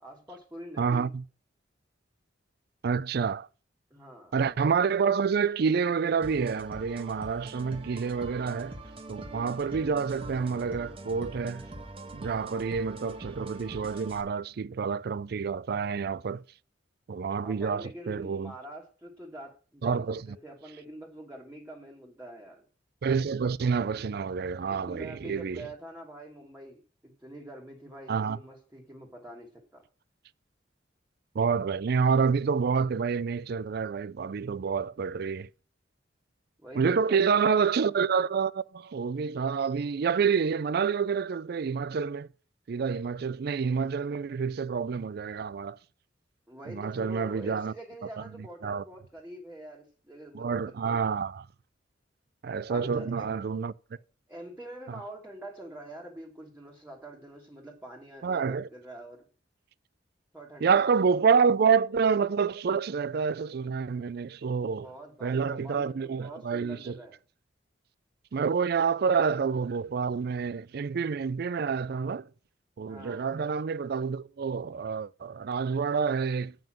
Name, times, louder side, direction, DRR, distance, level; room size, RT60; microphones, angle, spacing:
voice 1, 0.0-1.1 3.9-4.3 17.4-22.6 24.7-29.8 36.6-37.6 46.5-51.0 52.7-53.3 54.3-59.3 60.3-61.2 64.8-67.2 72.9-73.3, right 1 dB, 10° right, 1.5 m, -45 dB
voice 2, 0.8-1.2 2.8-3.5 4.3-8.8 9.1-11.6 12.1-16.4 17.1-18.5 19.8-20.2 23.0-25.7 28.1-28.4 31.3-35.5 36.8-42.3 42.7-45.8 46.7-47.7 48.2-48.3 48.6-48.8 50.3-51.5 52.4-53.7 54.9-55.0 58.2-58.7 60.6-64.9 65.2-67.0 68.3-72.3 72.8-76.5, right 6 dB, 55° right, 0.4 m, -28 dB
sound 1, 6.2-14.2, right 1 dB, 30° right, 1.3 m, -43 dB
7.8 x 5.4 x 7.4 m
head